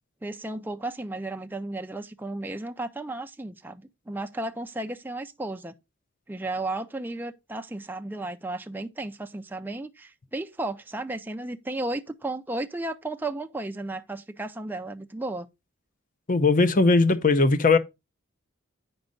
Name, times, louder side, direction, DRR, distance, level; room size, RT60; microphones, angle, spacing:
voice 1, 0.2-5.7 6.3-15.5, right 2 dB, 10° right, 0.4 m, -34 dB
voice 2, 16.3-17.8, left 3 dB, 40° left, 0.7 m, -19 dB
8.9 x 5.3 x 3.8 m
head